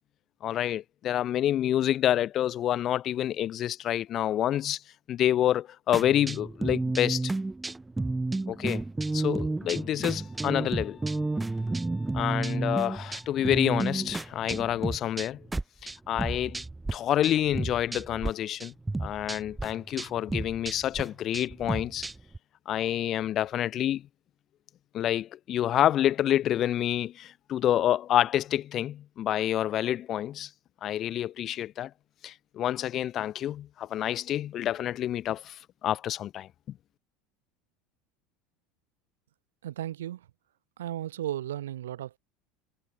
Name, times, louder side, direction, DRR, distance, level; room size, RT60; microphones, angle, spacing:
voice 1, 0.4-4.8 5.1-7.3 8.5-8.8 9.1-11.0 12.1-15.4 15.8-16.6 16.9-18.7 19.0-22.1 22.7-24.0 24.9-30.5 30.8-31.9 32.2-36.5, left 11 dB, 45° left, 0.5 m, -28 dB
sound 1, 5.9-17.0 17.2-18.3 18.6-22.4, right 2 dB, 10° right, 0.8 m, -32 dB
sound 2, 10.1-13.8, left 6 dB, 25° left, 4.7 m, -58 dB
voice 2, 39.6-40.3 40.8-42.2, right 12 dB, 80° right, 0.4 m, -35 dB
hypercardioid pair, 80°, 0 cm